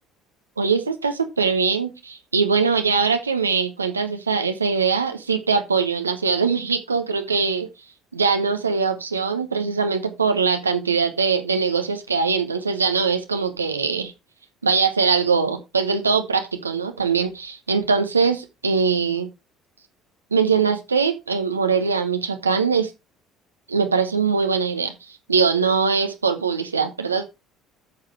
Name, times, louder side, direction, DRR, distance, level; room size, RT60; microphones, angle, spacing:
voice 1, 0.6-7.7 8.1-14.1 14.6-19.3 20.3-22.9 23.7-24.9 25.3-27.2, right 5 dB, 90° right, 0.9 m, -22 dB
7.4 x 6.8 x 4.6 m
figure-of-eight pair, 60°, 0 cm